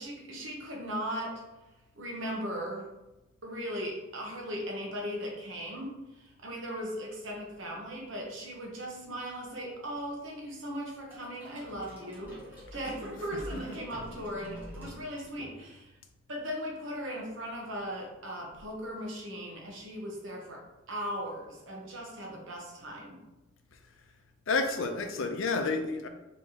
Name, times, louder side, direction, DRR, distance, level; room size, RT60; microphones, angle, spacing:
voice 1, 0.0-1.4 1.9-2.9 3.4-15.9 16.3-20.6 20.9-23.2, equal, 65° right, -1 dB, 1.1 m, -38 dB
sound 1, 11.1-15.9, equal, 10° right, 1.5 m, -46 dB
voice 2, 13.2-13.8 24.5-26.1, left 3 dB, 70° left, 6 dB, 0.6 m, -31 dB
4.7 x 3.4 x 2.9 m, 1.0 s
head